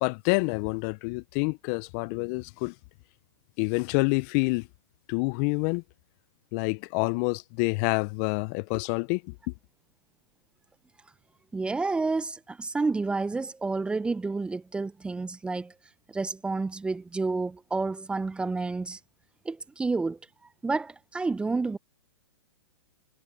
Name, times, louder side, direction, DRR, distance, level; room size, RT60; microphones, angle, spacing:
voice 1, 0.0-2.7 3.6-4.7 5.1-5.8 6.5-9.3, left 30 dB, 35° left, 0.6 m, -27 dB
voice 2, 11.5-15.7 16.1-19.0 19.4-20.2 20.6-21.8, right 3 dB, 5° right, 0.7 m, -29 dB
hypercardioid pair, 125°, 14 cm